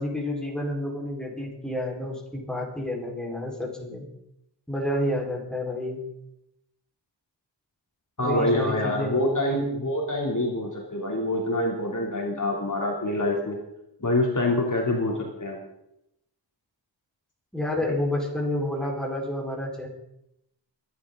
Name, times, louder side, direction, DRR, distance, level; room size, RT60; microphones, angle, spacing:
voice 1, 0.0-4.0 4.7-6.0 8.2-9.7 17.5-19.9, left 1 dB, ahead, -2 dB, 4.6 m, -30 dB
voice 2, 8.2-13.6 14.0-15.6, left 1 dB, 45° left, -2 dB, 3.1 m, -26 dB
23.0 x 11.0 x 3.9 m, 0.83 s
wide cardioid pair, 85°, 43 cm